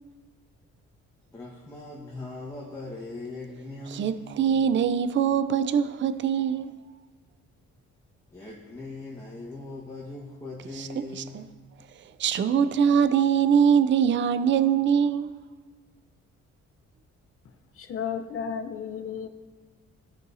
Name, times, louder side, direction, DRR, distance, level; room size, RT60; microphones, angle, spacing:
voice 1, 1.3-4.5 8.3-11.5, left 2 dB, 10° left, 1.4 m, -40 dB
voice 2, 3.9-6.7 10.8-10.9 11.2-11.4 12.2-15.3, right 7 dB, 40° right, 0.5 m, -23 dB
voice 3, 17.7-19.3, left 7 dB, 45° left, 0.8 m, -33 dB
15.0 x 5.2 x 2.7 m
cardioid pair, 90°, 30 cm